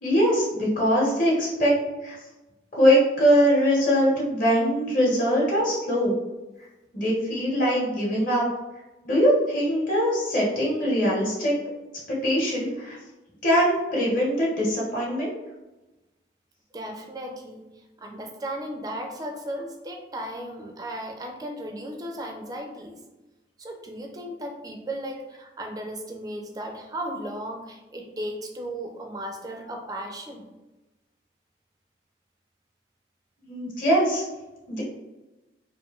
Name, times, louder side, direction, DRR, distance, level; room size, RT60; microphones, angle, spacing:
voice 1, 0.0-2.2 2.7-6.2 6.9-8.4 9.0-11.5 12.1-13.0 13.4-15.3 33.4-34.2 34.7-34.8, equal, 45° left, -5 dB, 0.9 m, -22 dB
voice 2, 16.7-23.0 23.6-30.5, right 1 dB, 20° right, 2 dB, 0.3 m, -35 dB
2.9 x 2.5 x 2.3 m, 1.1 s
head